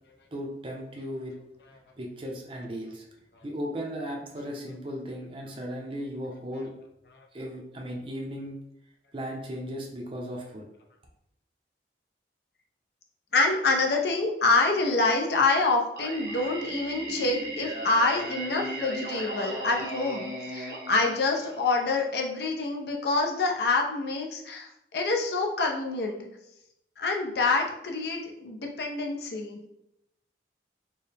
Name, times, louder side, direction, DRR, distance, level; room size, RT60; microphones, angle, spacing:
voice 1, 0.3-1.3 2.0-3.0 3.4-6.7 7.3-8.6 9.1-10.6, equal, 30° right, -1 dB, 0.5 m, -36 dB
voice 2, 13.3-26.3 27.0-29.6, left 3 dB, 65° left, 1 dB, 0.6 m, -26 dB
Singing, 16.0-21.9, right 1 dB, 70° right, 0.9 m, -36 dB
4.4 x 2.1 x 3.3 m, 0.81 s
head